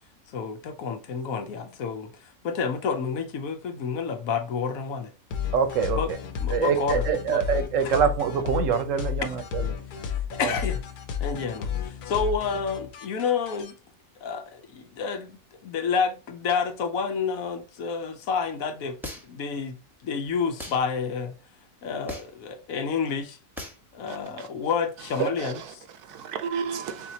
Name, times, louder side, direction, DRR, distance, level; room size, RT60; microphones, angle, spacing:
voice 1, 0.3-5.1 5.9-6.1 6.4-7.4 7.8-8.0 10.1-10.8 11.2-13.7 14.2-19.8 20.0-21.3 21.8-23.4 23.9-25.5, left 5 dB, 70° left, 1.1 m, -29 dB
sound 1, 5.3-13.7, left 8 dB, 85° left, 1.3 m, -32 dB
voice 2, 5.5-6.2 6.5-9.7 10.4-10.5, right 7 dB, 60° right, 1.0 m, -25 dB
sound 2, 19.0-19.5 20.6-20.8 22.1-22.4 23.6-23.8, left 1 dB, ahead, 0.9 m, -37 dB
voice 3, 24.1-24.5 25.0-27.1, right 7 dB, 85° right, 1.3 m, -33 dB
4.3 x 4.2 x 2.8 m
omnidirectional pair, 1.6 m